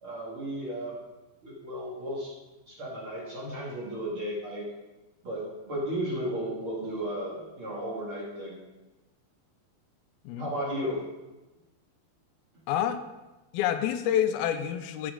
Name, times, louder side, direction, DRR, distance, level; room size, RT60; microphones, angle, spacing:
voice 1, 0.0-0.9 1.4-2.3 2.7-4.7 5.2-8.6 10.4-11.1, equal, 40° right, -6 dB, 2.7 m, -34 dB
voice 2, 12.7-13.0 13.5-15.1, left 10 dB, 90° left, 9 dB, 2.6 m, -27 dB
14.0 x 7.5 x 3.8 m, 1.1 s
omnidirectional pair, 4.2 m